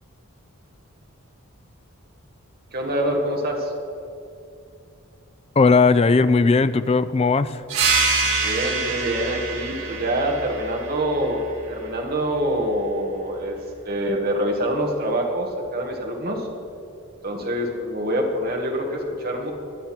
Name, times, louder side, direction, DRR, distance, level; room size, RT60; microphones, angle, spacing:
voice 1, 2.7-3.7 8.4-13.6 13.8-16.5 17.2-19.5, right 1 dB, 45° right, 1 dB, 1.7 m, -25 dB
voice 2, 5.6-7.6, left 4 dB, 25° left, 13 dB, 0.3 m, -17 dB
sound 1, 7.7-12.9, right 4 dB, 80° right, 3.5 m, -26 dB
22.0 x 8.2 x 4.4 m, 2.5 s
head